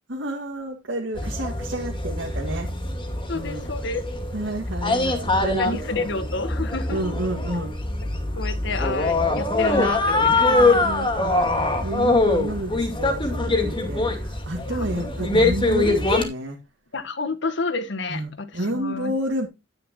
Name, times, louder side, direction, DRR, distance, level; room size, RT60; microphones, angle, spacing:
voice 1, 0.1-2.7 3.3-3.7 4.3-6.1 6.9-7.7 10.8-11.6 11.8-16.6 18.1-19.5, right 1 dB, 75° right, 2.0 m, -30 dB
sound 1, 1.2-16.2, left 2 dB, 25° left, 2.3 m, -23 dB
voice 2, 3.3-4.0 5.6-7.0 8.3-10.8 14.6-15.4 16.9-19.1, left 3 dB, 65° left, 1.3 m, -30 dB
10.5 x 10.0 x 2.9 m
head